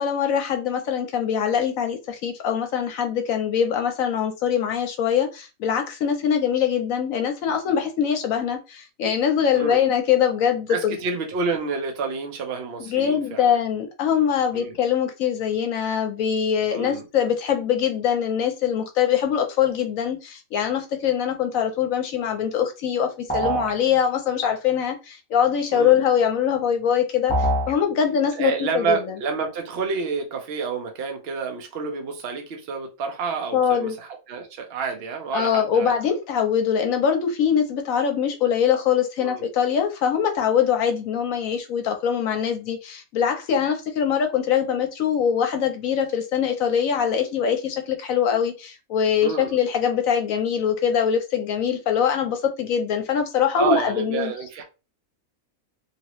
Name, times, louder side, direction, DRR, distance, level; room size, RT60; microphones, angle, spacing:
voice 1, 0.0-11.0 12.8-27.3 27.7-29.1 33.5-33.9 35.3-54.3, left 8 dB, 70° left, 1.0 m, -23 dB
voice 2, 10.7-13.6 14.5-14.7 16.7-17.0 25.7-26.0 28.3-35.9 39.2-39.5 49.2-49.5 53.5-54.6, right 5 dB, 50° right, 0.9 m, -28 dB
sound 1, 23.3-23.8 27.3-27.8, right 1 dB, 10° left, 0.6 m, -23 dB
2.9 x 2.6 x 3.0 m
omnidirectional pair, 1.5 m